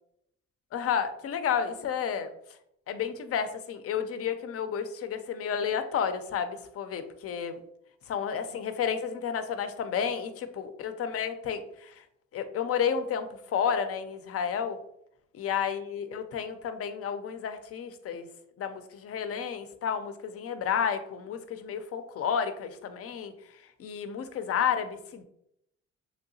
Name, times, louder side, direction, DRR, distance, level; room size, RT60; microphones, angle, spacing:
voice 1, 0.7-2.3 2.9-7.6 8.1-11.9 12.3-14.8 15.4-18.3 18.6-23.3 23.8-25.2, left 7 dB, 50° left, 9 dB, 0.4 m, -31 dB
3.2 x 2.7 x 2.6 m, 0.76 s
cardioid pair, 90°, 30 cm